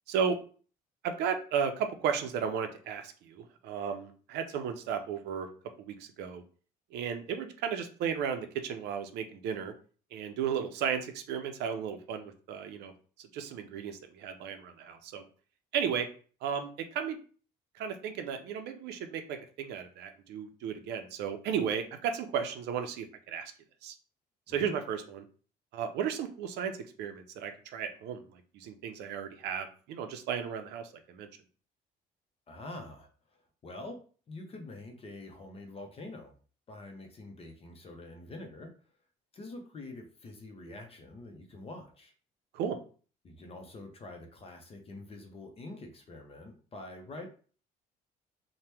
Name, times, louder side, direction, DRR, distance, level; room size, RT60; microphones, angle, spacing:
voice 1, 0.1-0.4 1.0-5.5 5.8-6.4 6.9-9.7 10.1-12.9 13.2-15.2 15.7-16.1 16.4-17.2 17.8-23.5 23.8-23.9 24.5-25.3 25.7-26.7 27.0-31.3 42.5-42.8, right 7 dB, 80° right, 7 dB, 0.5 m, -34 dB
voice 2, 32.5-33.1 33.6-34.0 34.3-36.3 36.7-38.7 39.3-42.1 43.2-47.3, left 2 dB, 35° left, 3 dB, 0.6 m, -45 dB
2.8 x 2.2 x 3.2 m, 0.40 s
cardioid pair, 110°, 17 cm